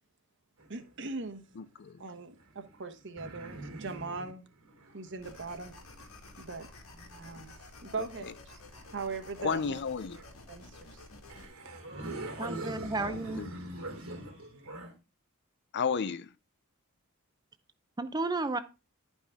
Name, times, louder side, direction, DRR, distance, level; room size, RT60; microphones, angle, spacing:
sound 1, 0.6-1.5 2.3-7.7 8.6-10.4 11.0-11.1 11.3-14.9, right 1 dB, 90° right, 3.1 m, -44 dB
voice 1, 0.7-1.4 2.0-4.5 4.9-5.8 6.4-6.7 7.2-7.5 7.8-8.6 8.9-9.8 10.5-11.0, right 4 dB, 60° right, 1.2 m, -40 dB
voice 2, 1.6-2.0 8.0-8.3 9.4-10.2 13.0-13.5 15.7-16.3, left 6 dB, 55° left, 0.5 m, -33 dB
sound 2, 5.2-11.5, left 2 dB, 80° left, 1.7 m, -51 dB
voice 3, 12.4-13.4 18.0-18.6, right 3 dB, 20° right, 0.6 m, -32 dB
11.0 x 5.5 x 3.5 m
head